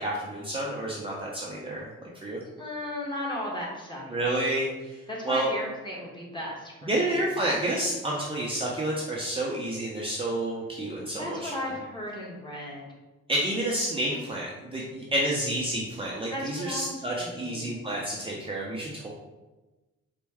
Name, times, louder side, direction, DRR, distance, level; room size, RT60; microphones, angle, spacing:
voice 1, 0.0-1.9 2.2-2.4 4.1-5.0 5.2-5.5 6.9-11.5 13.3-19.1, right 1 dB, 20° right, -4 dB, 0.6 m, -29 dB
voice 2, 2.6-4.2 5.1-7.2 11.2-12.9 14.1-14.2 16.3-17.8, left 1 dB, 15° left, -3 dB, 1.2 m, -36 dB
4.2 x 2.2 x 3.4 m, 1.1 s
cardioid pair, 90°, 30 cm